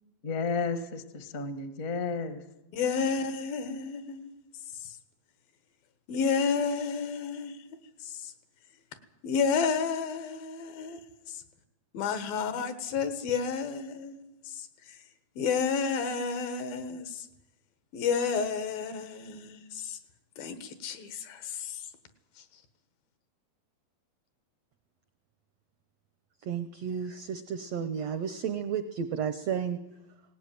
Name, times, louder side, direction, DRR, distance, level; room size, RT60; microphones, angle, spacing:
voice 1, 0.2-2.4, left 4 dB, 60° left, 0.8 m, -32 dB
voice 2, 2.7-4.3 4.8-4.9 6.1-7.6 8.0-8.3 9.2-11.0 11.3-11.4 11.9-14.7 15.4-17.3 17.9-20.0 20.4-21.8, left 5 dB, 85° left, 3.4 m, -31 dB
voice 3, 26.4-29.8, right 7 dB, 80° right, 1.4 m, -32 dB
18.5 x 18.5 x 9.3 m
omnidirectional pair, 4.1 m